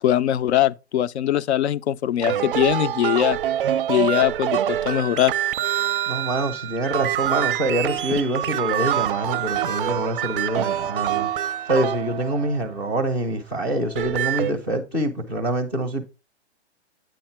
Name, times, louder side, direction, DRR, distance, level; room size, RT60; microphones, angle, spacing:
voice 1, 0.0-3.4 3.9-5.3, left 12 dB, 75° left, 0.6 m, -21 dB
sound 1, 2.2-12.7 13.8-14.5, right 11 dB, 55° right, 0.5 m, -25 dB
voice 2, 6.1-16.0, right 1 dB, 10° left, 0.4 m, -25 dB
9.2 x 4.2 x 4.4 m
hypercardioid pair, 170°, 34 cm